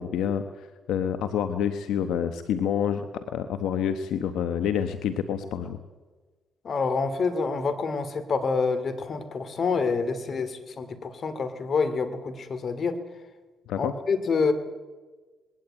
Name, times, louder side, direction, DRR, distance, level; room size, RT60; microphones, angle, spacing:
voice 1, 0.0-5.8 13.7-13.9, left 8 dB, 80° left, 9 dB, 1.1 m, -28 dB
voice 2, 6.6-13.0 13.8-14.5, left 4 dB, 50° left, 11 dB, 2.6 m, -27 dB
21.0 x 17.0 x 9.0 m, 1.3 s
cardioid pair, 90°, 0 cm